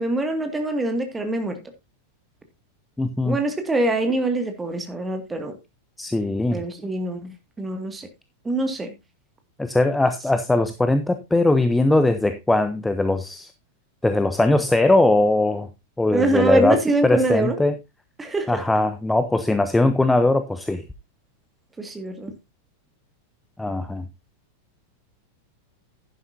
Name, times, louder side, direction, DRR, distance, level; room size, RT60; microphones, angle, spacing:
voice 1, 0.0-1.6 3.2-5.6 6.5-8.1 8.4-8.9 16.1-17.6 18.2-18.6 21.8-22.3, right 2 dB, 10° right, 2.1 m, -24 dB
voice 2, 3.0-3.4 6.0-6.6 9.6-13.5 14.0-15.7 16.0-17.8 18.5-20.8 23.6-24.1, left 2 dB, 5° left, 0.8 m, -20 dB
11.0 x 10.5 x 2.7 m
figure-of-eight pair, 90°, 0 cm